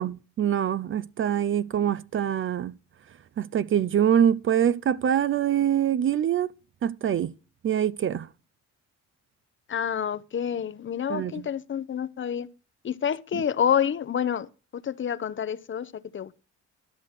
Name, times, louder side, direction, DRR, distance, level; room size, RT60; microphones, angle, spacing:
voice 1, 0.0-2.7 3.4-6.5 6.8-7.3 7.6-8.3 11.1-11.4 13.3-13.4, right 9 dB, 45° right, 0.5 m, -24 dB
voice 2, 9.7-12.5 12.8-16.3, left 8 dB, 40° left, 0.7 m, -28 dB
12.0 x 5.8 x 6.5 m
cardioid pair, 90°, 30 cm